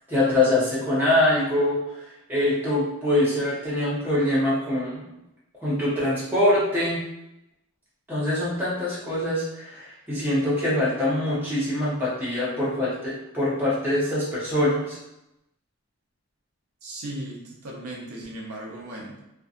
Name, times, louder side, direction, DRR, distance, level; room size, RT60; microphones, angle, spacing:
voice 1, 0.1-5.0 5.6-7.0 8.1-15.0, left 1 dB, 10° right, -8 dB, 0.7 m, -24 dB
voice 2, 16.8-19.2, right 1 dB, 85° right, -2 dB, 0.6 m, -37 dB
2.6 x 2.2 x 2.4 m, 0.90 s
head